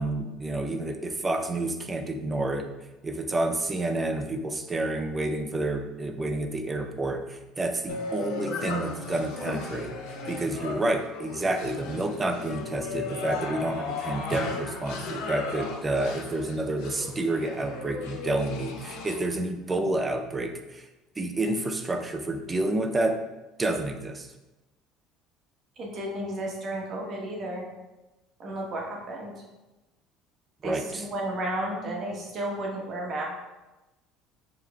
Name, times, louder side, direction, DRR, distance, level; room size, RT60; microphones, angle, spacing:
voice 1, 0.0-2.7 3.0-20.8 21.2-23.2 23.6-24.3 30.6-31.1, right 2 dB, 15° right, 6 dB, 0.4 m, -29 dB
sound 1, 7.9-19.2, left 4 dB, 80° left, 0.7 m, -36 dB
voice 2, 25.8-27.7 28.4-29.3 30.6-33.2, right 1 dB, 35° right, -1 dB, 0.9 m, -33 dB
7.0 x 2.9 x 2.3 m, 1.1 s
cardioid pair, 155°, 0 cm